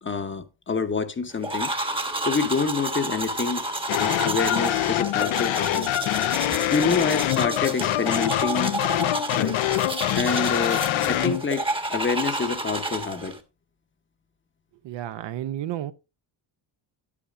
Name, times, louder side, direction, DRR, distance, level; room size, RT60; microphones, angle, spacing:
voice 1, 0.0-1.7 2.2-3.6 4.0-5.9 6.5-8.7 9.3-9.6 10.2-13.3, left 4 dB, 25° left, 0.9 m, -27 dB
sound 1, 1.4-13.4, right 2 dB, 10° right, 1.0 m, -31 dB
sound 2, 3.9-11.5, left 14 dB, 75° left, 0.7 m, -25 dB
voice 2, 14.8-15.9, right 12 dB, 65° right, 0.6 m, -31 dB
9.9 x 8.5 x 2.4 m
cardioid pair, 105°, 48 cm